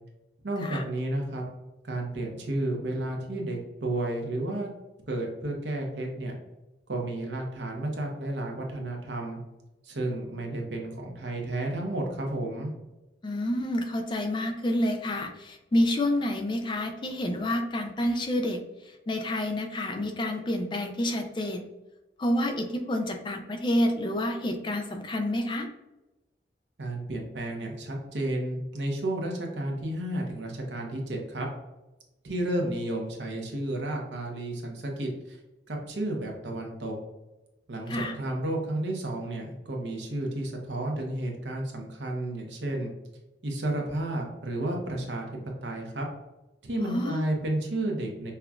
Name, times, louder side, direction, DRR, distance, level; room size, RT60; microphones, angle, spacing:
voice 1, 0.4-1.4 1.8-4.7 5.1-6.3 6.9-9.4 9.8-12.7 26.8-31.5 32.2-35.4 35.7-37.0 37.7-42.9 43.4-45.3 45.6-46.1 46.6-48.3, right 1 dB, 75° right, 1 dB, 0.8 m, -32 dB
voice 2, 13.2-21.7 22.2-25.7 37.9-38.1 46.8-47.2, left 1 dB, 25° left, 5 dB, 0.3 m, -29 dB
5.5 x 2.3 x 2.3 m, 1.0 s
head